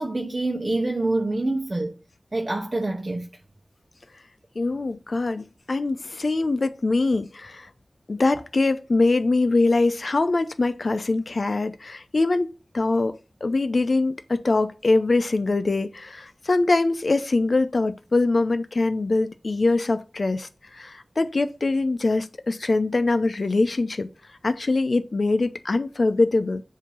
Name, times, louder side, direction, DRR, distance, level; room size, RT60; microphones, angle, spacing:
voice 1, 0.0-2.0 2.3-3.3, right 2 dB, 45° right, 0.8 m, -26 dB
voice 2, 4.6-7.7 8.1-24.1 24.4-26.6, left 3 dB, 70° left, 0.6 m, -23 dB
7.3 x 2.8 x 5.5 m
wide cardioid pair, 55°, 0 cm